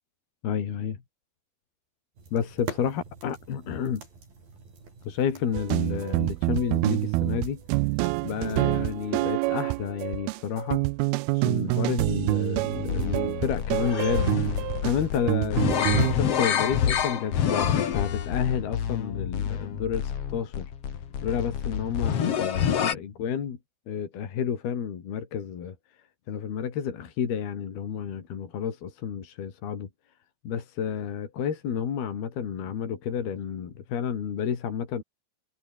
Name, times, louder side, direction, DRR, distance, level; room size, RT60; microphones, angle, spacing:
voice 1, 0.4-1.0 2.3-4.0 5.0-7.6 8.2-10.8 11.3-14.3 14.8-20.7 21.2-23.6 23.9-25.8 26.3-29.9 30.4-35.0, left 8 dB, 70° left, 5.0 m, -30 dB
sound 1, 2.2-9.1, right 4 dB, 60° right, 9.3 m, -45 dB
sound 2, 5.5-16.2, right 22 dB, 80° right, 2.3 m, -27 dB
sound 3, 12.7-22.9, left 8 dB, 50° left, 2.2 m, -28 dB
omnidirectional pair, 4.7 m